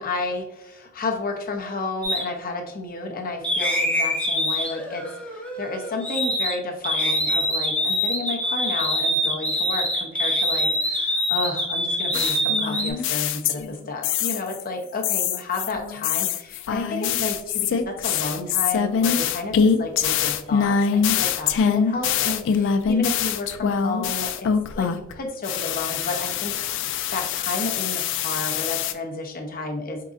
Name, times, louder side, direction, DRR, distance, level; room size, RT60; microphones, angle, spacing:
voice 1, 0.0-30.1, left 3 dB, 45° left, 3 dB, 0.7 m, -31 dB
sound 1, 2.0-2.2 3.4-6.5 6.8-12.9, equal, 5° left, 0.7 m, -24 dB
sound 2, 12.1-13.7 14.0-14.6 15.0-25.1 25.4-28.9, left 7 dB, 65° left, 0.3 m, -24 dB
4.0 x 3.8 x 2.4 m, 0.84 s
head